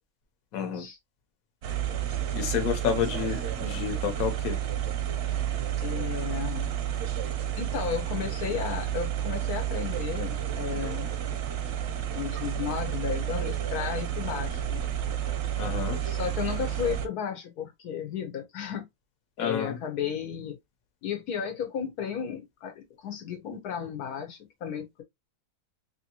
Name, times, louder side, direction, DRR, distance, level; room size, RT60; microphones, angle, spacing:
voice 1, 0.5-0.9 2.3-4.6 15.6-16.0 19.4-19.8, left 8 dB, 70° left, 1.2 m, -30 dB
sound 1, 1.6-17.1, right 10 dB, 65° right, 0.7 m, -31 dB
voice 2, 5.8-6.7 7.6-11.1 12.1-14.8 16.1-18.9 19.4-20.6 21.0-25.0, left 8 dB, 85° left, 1.3 m, -34 dB
3.0 x 2.7 x 2.8 m
omnidirectional pair, 1.6 m